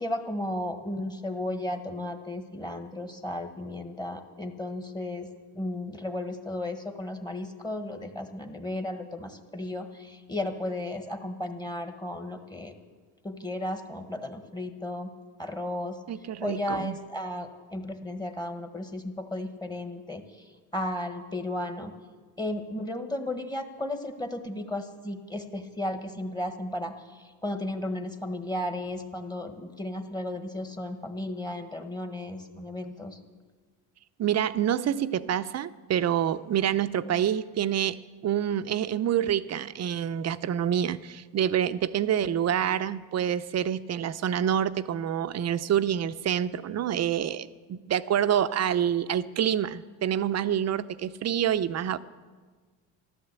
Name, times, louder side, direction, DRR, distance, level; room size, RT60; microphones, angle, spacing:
voice 1, 0.0-5.3 5.5-12.7 13.2-15.1 15.4-16.0 16.4-21.9 22.4-33.2, left 1 dB, 10° left, 6 dB, 1.5 m, -34 dB
voice 2, 16.1-16.9 34.2-38.0 38.2-52.0, right 9 dB, 45° right, 13 dB, 0.7 m, -27 dB
14.0 x 12.5 x 8.2 m, 1.4 s
cardioid pair, 100°, 37 cm